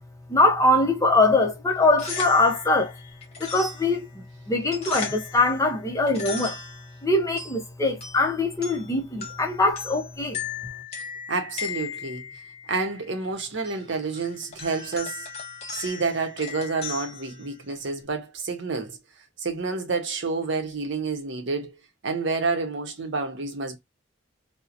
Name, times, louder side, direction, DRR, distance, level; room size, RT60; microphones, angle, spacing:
voice 1, 0.3-2.9 3.4-6.6 7.0-10.4, left 2 dB, 15° left, 0.5 m, -22 dB
sound 1, 1.8-18.0, left 5 dB, 35° left, 0.9 m, -38 dB
voice 2, 11.3-12.3 12.7-15.3 15.7-19.0 19.4-21.8 22.0-23.8, right 4 dB, 65° right, 0.7 m, -29 dB
2.7 x 2.0 x 2.4 m
head